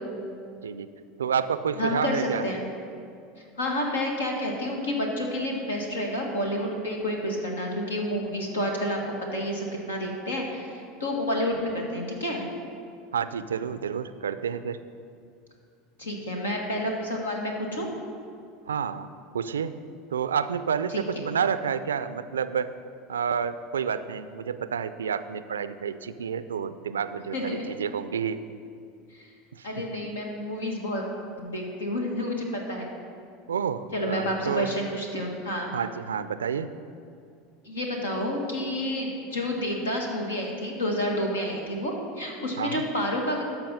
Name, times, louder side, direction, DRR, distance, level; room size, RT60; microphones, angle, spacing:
voice 1, 1.2-2.4 13.1-14.8 18.7-19.1 19.3-19.8 20.1-22.7 23.1-28.4 29.5-30.1 33.5-34.7 35.7-36.7 42.6-42.8, right 7 dB, 85° right, 13 dB, 0.3 m, -29 dB
voice 2, 1.8-2.6 3.6-12.4 16.0-17.9 27.3-27.7 29.1-29.3 29.6-31.0 31.4-32.9 33.9-35.7 37.6-43.4, left 1 dB, 85° left, 0 dB, 1.6 m, -29 dB
13.0 x 4.4 x 5.5 m, 2.4 s
hypercardioid pair, 85°, 0 cm